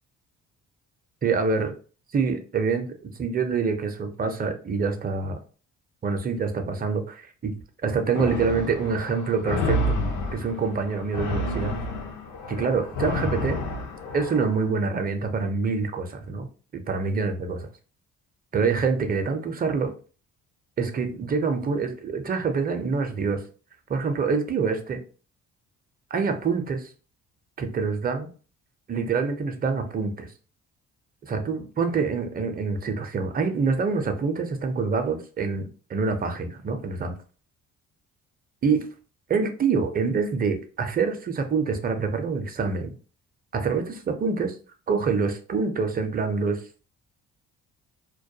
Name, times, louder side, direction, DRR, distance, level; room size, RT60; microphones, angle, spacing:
voice 1, 1.2-1.7 2.1-5.4 6.0-7.5 7.8-10.0 10.3-11.8 12.5-13.6 14.1-16.5 16.7-17.7 18.5-19.9 20.8-23.4 23.9-25.0 26.1-26.9 27.6-28.3 28.9-30.3 31.3-37.1 38.6-38.8 39.3-42.9 43.5-44.6 44.9-46.6, right 5 dB, 30° right, 6 dB, 0.5 m, -26 dB
sound 1, 8.1-14.6, left 1 dB, 85° left, 0.7 m, -29 dB
2.2 x 2.2 x 2.6 m, 0.38 s
cardioid pair, 90°, 30 cm